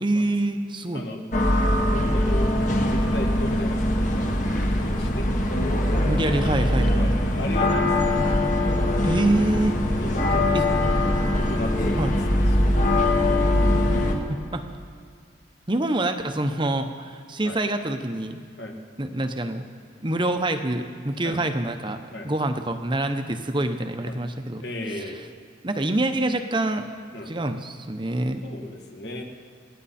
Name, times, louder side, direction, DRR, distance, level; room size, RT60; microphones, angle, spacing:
voice 1, 0.0-1.1 6.0-7.1 9.0-9.7 10.5-10.6 12.0-12.1 14.1-14.6 15.7-18.4 19.0-19.6 20.0-22.0 22.2-24.6 24.9-25.1 25.6-26.9 27.3-28.4, right 1 dB, 25° right, 7 dB, 0.9 m, -26 dB
sound 1, 1.3-14.1, left 1 dB, 45° left, 1.6 m, -22 dB
voice 2, 1.9-2.5 2.8-5.3 7.0-8.0 9.9-10.9 11.4-12.4 13.3-13.8 17.4-17.6 18.6-18.8 21.2-21.4 22.1-22.3 24.1-24.2 24.6-25.3 27.1-27.3 28.4-29.2, left 1 dB, 60° left, 1 dB, 2.0 m, -35 dB
27.0 x 10.0 x 4.3 m, 2.2 s
head